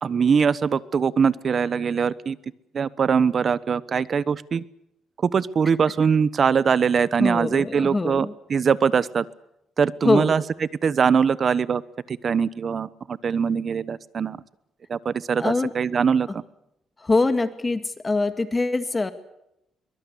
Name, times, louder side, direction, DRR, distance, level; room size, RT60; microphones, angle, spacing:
voice 1, 0.0-2.4 2.7-4.6 5.2-9.2 9.8-10.4 10.8-11.8 12.1-14.4 14.9-16.4, right 6 dB, 45° right, 17 dB, 1.1 m, -22 dB
voice 2, 7.2-8.3 10.0-10.3 15.4-15.7 17.0-19.1, left 3 dB, 25° left, 9 dB, 2.0 m, -23 dB
23.0 x 21.5 x 8.5 m, 0.83 s
cardioid pair, 90°, 0 cm